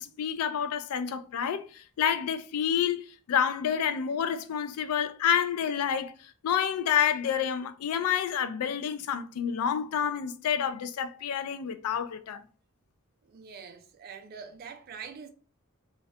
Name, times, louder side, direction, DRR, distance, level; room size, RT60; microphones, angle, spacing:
voice 1, 0.0-1.7 2.0-6.1 6.4-12.4, left 8 dB, 90° left, 0.3 m, -28 dB
voice 2, 13.2-15.3, right 6 dB, 45° right, 0.3 m, -44 dB
2.3 x 2.1 x 2.7 m
head